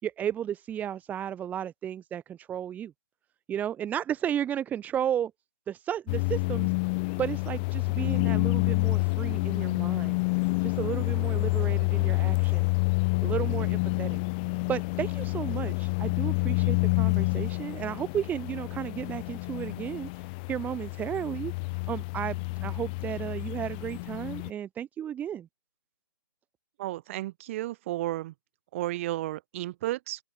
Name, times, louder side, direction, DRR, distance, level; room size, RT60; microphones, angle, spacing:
voice 1, 0.0-2.9 3.5-5.3 5.7-6.7 7.2-10.2 10.6-12.7 13.2-14.2 14.7-20.1 20.5-21.5 21.9-25.5, right 10 dB, 15° right, 3.7 m, -33 dB
sound 1, 6.1-24.5, left 29 dB, 25° left, 0.7 m, -28 dB
voice 2, 26.8-28.3 28.7-30.2, right 16 dB, 35° right, 7.8 m, -33 dB
open air
figure-of-eight pair, 140°, 12 cm